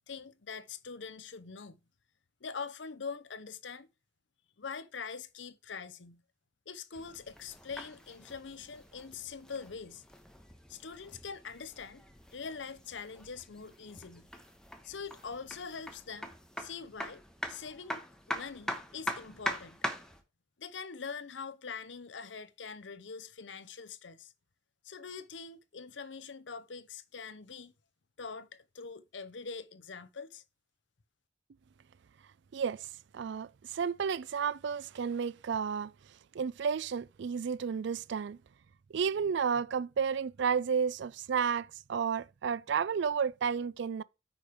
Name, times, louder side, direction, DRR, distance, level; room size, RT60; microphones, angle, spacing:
voice 1, 0.1-1.8 2.4-3.9 4.6-6.2 6.7-10.0 10.7-12.0 12.3-14.3 14.8-16.3 16.6-17.2 17.5-18.0 18.3-19.8 20.6-24.3 24.8-27.7 28.2-30.4, left 5 dB, 70° left, 0.8 m, -43 dB
sound 1, 6.9-20.2, left 1 dB, 5° left, 1.2 m, -43 dB
voice 2, 32.5-32.9 33.1-35.9 36.3-38.4 38.9-44.0, right 6 dB, 65° right, 0.4 m, -32 dB
9.0 x 5.2 x 4.9 m
head